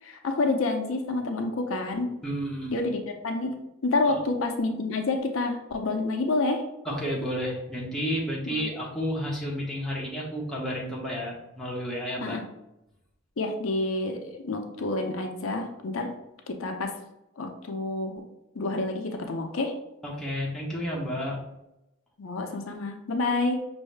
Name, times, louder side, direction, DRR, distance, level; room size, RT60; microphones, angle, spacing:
voice 1, 0.0-2.2 2.7-3.6 3.8-6.6 8.5-8.7 12.2-12.4 13.4-16.1 16.5-17.0 17.4-18.2 18.5-19.8 22.2-23.6, left 2 dB, 80° left, 4 dB, 0.6 m, -28 dB
voice 2, 2.2-2.7 4.1-4.2 6.8-12.4 20.0-21.4, equal, ahead, -5 dB, 0.9 m, -31 dB
5.4 x 2.7 x 3.3 m, 0.89 s
head